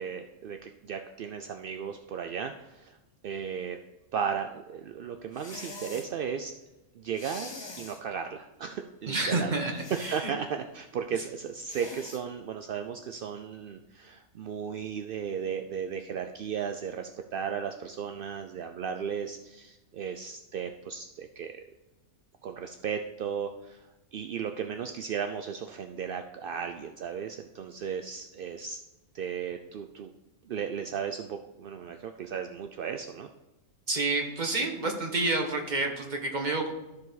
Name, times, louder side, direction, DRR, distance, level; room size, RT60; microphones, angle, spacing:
voice 1, 0.0-3.0 3.2-3.8 4.1-6.5 6.9-7.5 7.8-9.5 10.1-21.6 22.4-28.8 29.1-30.1 30.5-33.3, right 7 dB, 70° right, 6 dB, 0.5 m, -35 dB
sound 1, 5.3-6.1 7.1-8.0 9.7-10.3 11.7-12.2, left 3 dB, 25° left, 0.7 m, -43 dB
voice 2, 9.1-10.3 33.9-36.7, right 2 dB, 35° right, 3 dB, 1.3 m, -29 dB
13.5 x 4.8 x 4.0 m, 1.0 s
omnidirectional pair, 1.5 m